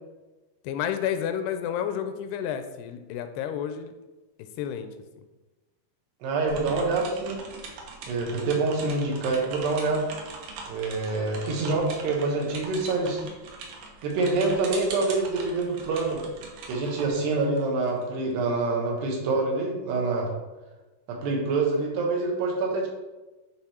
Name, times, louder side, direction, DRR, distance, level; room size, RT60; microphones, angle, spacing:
voice 1, 0.6-3.9 4.6-4.9, left 9 dB, 85° left, 9 dB, 2.5 m, -30 dB
voice 2, 6.2-7.4 8.1-10.1 10.7-13.3 14.0-16.2 16.7-20.3 21.1-22.9, right 3 dB, 85° right, 0 dB, 3.5 m, -26 dB
sound 1, 6.5-18.0, right 4 dB, 70° right, 2.2 m, -41 dB
10.0 x 3.6 x 4.3 m, 1.1 s
omnidirectional pair, 4.7 m